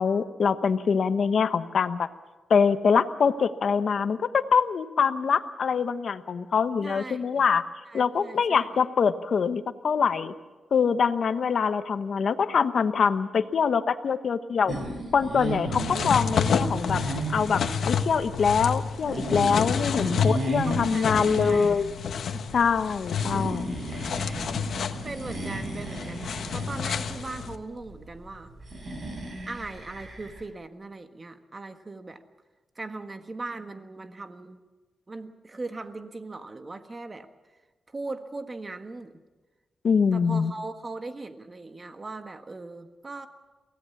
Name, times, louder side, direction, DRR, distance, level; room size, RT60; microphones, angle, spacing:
voice 1, 0.0-2.1 2.5-7.6 7.9-10.3 10.7-14.7 15.1-17.0 17.3-21.9 22.5-23.7 39.8-40.5, left 6 dB, 65° left, 10 dB, 1.1 m, -24 dB
voice 2, 6.8-7.5 7.9-8.7 19.7-20.3 20.6-21.7 22.3-22.5 23.1-23.5 24.8-28.5 29.5-32.2 32.7-34.6 35.1-37.3 37.9-39.2 40.1-43.3, right 3 dB, 30° right, 7 dB, 1.5 m, -39 dB
sound 1, 14.7-30.5, right 2 dB, 45° right, 5.7 m, -35 dB
sound 2, 15.7-27.6, left 6 dB, 80° left, 1.3 m, -30 dB
23.5 x 17.5 x 7.2 m, 1.2 s
wide cardioid pair, 105°, 0 cm